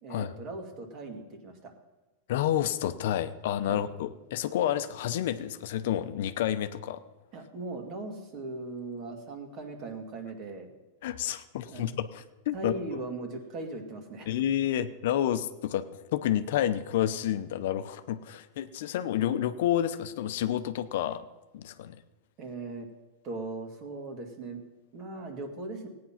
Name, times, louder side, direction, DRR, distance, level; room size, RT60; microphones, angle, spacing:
voice 1, 0.0-1.7 3.7-3.8 7.3-10.7 11.7-11.8 12.5-14.4 22.4-22.9 23.2-24.6 24.9-25.9, right 2 dB, 35° right, 4 dB, 2.2 m, -39 dB
voice 2, 2.3-7.0 11.0-12.7 14.3-15.8 16.1-21.2 21.5-22.0, left 11 dB, 65° left, 11 dB, 0.7 m, -29 dB
15.5 x 9.5 x 5.8 m, 1.1 s
supercardioid pair, 145°, 0 cm